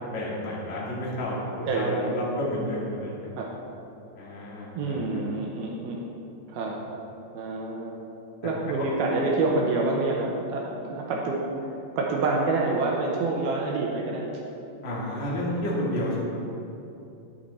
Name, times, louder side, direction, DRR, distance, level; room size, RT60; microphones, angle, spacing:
voice 1, 0.1-1.4 1.7-3.2 4.2-5.0 14.8-16.2, left 1 dB, 45° left, -6 dB, 0.9 m, -30 dB
voice 2, 1.7-2.2 3.4-3.5 4.8-6.0 6.5-6.8 7.3-7.9 8.4-14.3, right 3 dB, 75° right, -1 dB, 2.3 m, -27 dB
10.5 x 8.6 x 4.2 m, 2.8 s
omnidirectional pair, 5.2 m